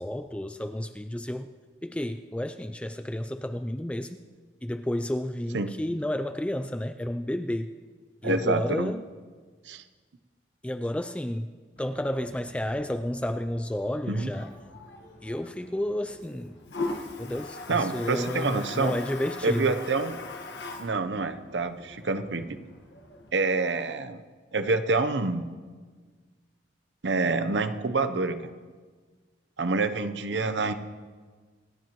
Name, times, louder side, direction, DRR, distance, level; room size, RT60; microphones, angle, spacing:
voice 1, 0.0-1.5 1.8-4.2 4.6-7.7 8.2-9.0 10.6-11.5 11.8-14.5 15.2-16.6 17.2-19.8, left 1 dB, 5° left, 9 dB, 0.3 m, -31 dB
voice 2, 8.2-8.9 9.7-9.8 14.1-14.3 17.7-19.0 19.4-20.2 20.8-22.6 23.3-24.2 24.5-25.5 27.0-28.5 29.6-30.7, right 3 dB, 85° right, 10 dB, 0.8 m, -27 dB
Toilet flush, 11.8-23.3, left 3 dB, 70° left, 1.5 m, -41 dB
26.5 x 10.5 x 3.0 m, 1.5 s
head